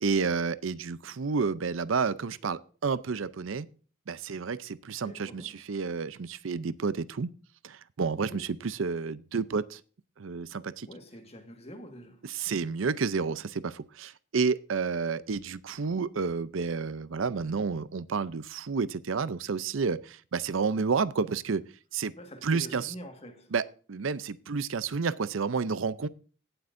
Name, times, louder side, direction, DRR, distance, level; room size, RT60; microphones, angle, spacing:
voice 1, 0.0-3.7 4.1-7.3 7.6-9.8 10.2-10.9 12.3-21.6 21.9-22.1 22.4-22.9 23.5-26.1, right 5 dB, 75° right, 0.6 m, -30 dB
voice 2, 4.9-5.6 8.1-8.5 10.9-12.5 22.1-23.5, equal, 30° left, 1.7 m, -46 dB
17.0 x 7.8 x 2.6 m
head